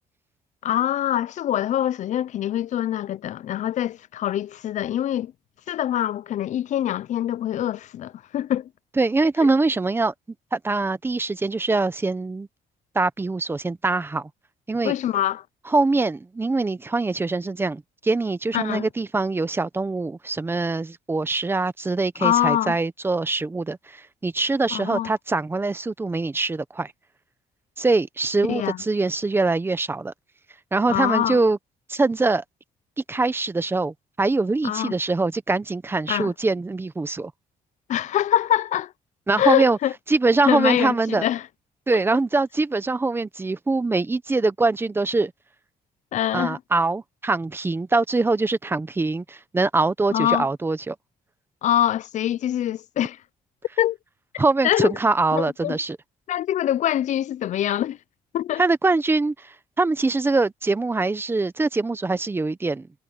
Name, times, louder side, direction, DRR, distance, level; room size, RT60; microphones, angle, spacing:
voice 1, 0.6-5.3 5.7-8.7 14.8-15.4 18.5-18.9 22.2-22.8 24.7-25.1 28.5-28.8 30.9-31.4 34.6-34.9 36.1-36.3 37.9-38.9 39.4-39.9 40.4-41.4 46.1-46.6 50.1-50.5 51.6-53.2 53.8-54.0 54.6-54.9 55.3-55.8 56.3-58.0 58.3-58.6, left 11 dB, 45° left, 0.4 m, -24 dB
voice 2, 9.0-10.1 10.5-12.5 12.9-14.3 14.7-14.9 15.7-26.9 27.8-30.1 30.7-31.6 31.9-32.4 33.1-37.3 39.3-39.8 40.1-41.2 41.9-45.3 46.3-50.9 54.4-56.0 58.6-62.9, right 3 dB, 15° right, 0.8 m, -23 dB
cardioid pair, 160°, 17 cm